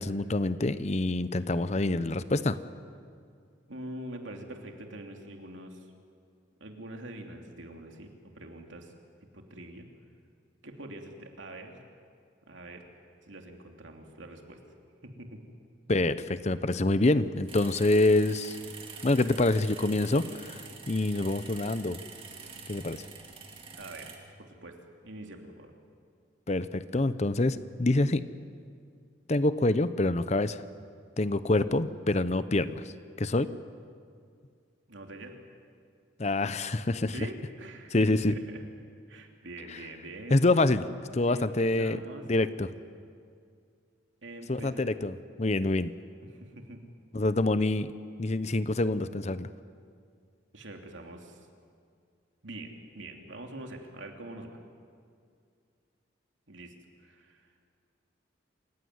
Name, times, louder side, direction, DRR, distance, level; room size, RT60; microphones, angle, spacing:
voice 1, 0.0-2.6 15.9-18.6 19.0-22.0 22.7-23.0 26.5-28.2 29.3-30.6 31.2-32.8 33.2-33.5 36.2-37.1 37.9-38.3 40.3-40.9 41.1-42.0 42.3-42.7 44.5-45.1 45.4-45.9 47.1-47.9 48.2-49.5, left 2 dB, 35° left, 14 dB, 0.7 m, -26 dB
voice 2, 3.7-5.9 6.6-8.9 9.3-9.9 10.6-11.8 12.5-12.9 13.2-14.6 15.0-15.4 23.8-24.1 24.4-24.8 25.0-25.7 34.9-35.3 37.1-38.6 39.1-40.4 41.2-42.3 44.2-44.9 46.2-46.8 50.5-51.4 52.4-54.6 56.5-56.7 57.0-57.5, right 1 dB, 80° right, 3 dB, 2.9 m, -44 dB
sound 1, 17.5-24.2, right 5 dB, 30° right, 2.4 m, -46 dB
27.5 x 16.0 x 9.6 m, 2.2 s
head